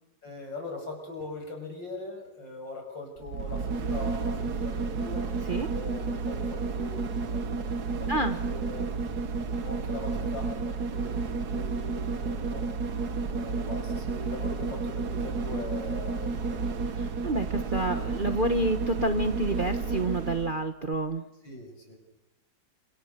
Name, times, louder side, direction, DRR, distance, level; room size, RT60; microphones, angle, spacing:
voice 1, 0.2-5.3 5.7-7.7 8.0-8.9 9.4-12.6 13.3-16.8 21.4-22.0, left 2 dB, 70° left, 2 dB, 7.6 m, -41 dB
sound 1, 3.2-20.6 20.9-21.0, right 4 dB, 55° right, 1.7 m, -31 dB
voice 2, 8.1-8.4 17.0-21.2, right 2 dB, 30° right, 7 dB, 1.1 m, -28 dB
29.5 x 27.5 x 6.7 m, 1.0 s
omnidirectional pair, 2.0 m